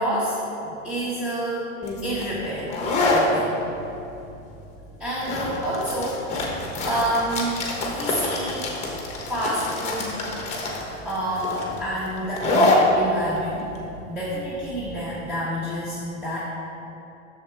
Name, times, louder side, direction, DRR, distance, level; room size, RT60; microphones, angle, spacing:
voice 1, 0.0-1.7 2.0-3.6 5.0-8.7 9.3-10.2 11.0-13.7 14.1-16.4, right 1 dB, 5° right, -11 dB, 1.2 m, -28 dB
sound 1, 1.8-15.2, left 2 dB, 15° left, 1.2 m, -26 dB
10.0 x 7.3 x 3.5 m, 2.8 s
hypercardioid pair, 145°, 42 cm